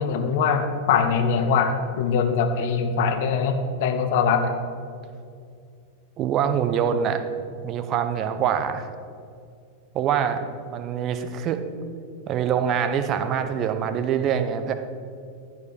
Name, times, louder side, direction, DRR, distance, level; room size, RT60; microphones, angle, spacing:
voice 1, 0.0-4.5, left 5 dB, 50° left, 6 dB, 1.0 m, -22 dB
voice 2, 6.2-7.2 7.6-8.9 9.9-11.6 12.3-14.7, right 8 dB, 35° right, 9 dB, 0.7 m, -24 dB
12.0 x 4.9 x 6.3 m, 2.3 s
figure-of-eight pair, 90°, 0 cm